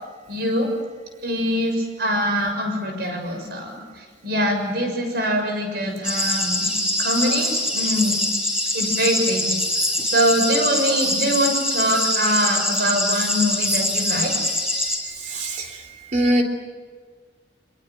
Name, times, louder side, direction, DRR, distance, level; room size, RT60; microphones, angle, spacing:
voice 1, 0.3-0.7 1.2-6.7 7.0-8.2 8.7-14.3, equal, 55° right, 4 dB, 6.9 m, -23 dB
sound 1, 6.0-15.0, left 1 dB, 5° right, 5.6 m, -24 dB
voice 2, 15.1-15.8 16.1-16.4, right 1 dB, 40° right, 2 dB, 3.5 m, -22 dB
24.5 x 23.0 x 9.2 m, 1.5 s
head